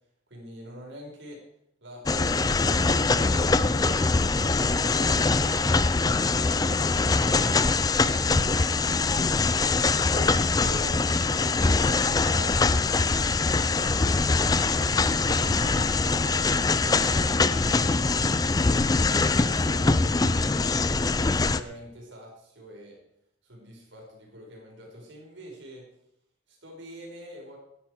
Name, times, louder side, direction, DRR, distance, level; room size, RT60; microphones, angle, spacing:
voice 1, 0.3-1.4 1.8-9.5 10.1-20.7 21.2-23.0 23.4-25.9 26.5-27.6, equal, 75° right, -1 dB, 4.9 m, -45 dB
sound 1, 2.1-21.6, left 3 dB, 20° left, 0.4 m, -23 dB
15.0 x 10.5 x 4.7 m, 0.77 s
head